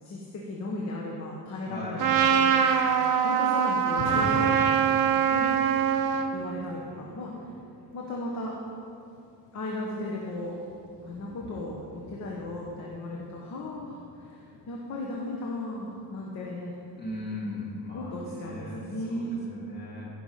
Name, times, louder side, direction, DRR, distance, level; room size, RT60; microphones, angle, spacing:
voice 1, 0.0-2.6 3.2-4.8 5.3-5.5 6.3-7.4 7.9-8.6 9.5-10.6 11.0-16.7 17.9-19.4, left 1 dB, 40° left, -2 dB, 1.2 m, -36 dB
voice 2, 1.6-2.1 17.0-18.8 19.2-20.1, left 1 dB, 20° left, -5 dB, 2.7 m, -38 dB
Trumpet, 2.0-6.3, right 8 dB, 50° right, 0.8 m, -23 dB
Thunder, 3.8-18.0, left 3 dB, 85° left, 2.5 m, -44 dB
15.0 x 6.0 x 5.6 m, 2.6 s
cardioid pair, 160°, 43 cm